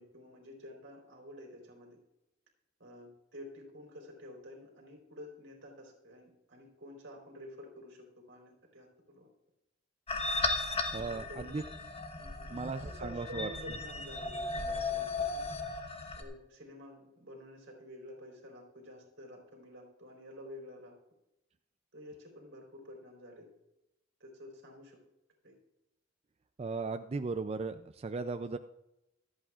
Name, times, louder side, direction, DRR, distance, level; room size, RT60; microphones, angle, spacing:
voice 1, 0.0-2.0 2.8-9.3 10.9-11.6 12.2-12.5 12.8-15.4 16.2-20.9 21.9-23.5 24.2-25.0 25.4-25.5, left 1 dB, 70° right, 0 dB, 4.0 m, -50 dB
sound 1, 10.1-16.2, left 3 dB, 30° left, 1.2 m, -36 dB
voice 2, 10.9-11.6 12.5-13.5 26.6-28.6, right 4 dB, 30° right, 9 dB, 0.4 m, -36 dB
25.0 x 8.7 x 2.5 m, 0.89 s
head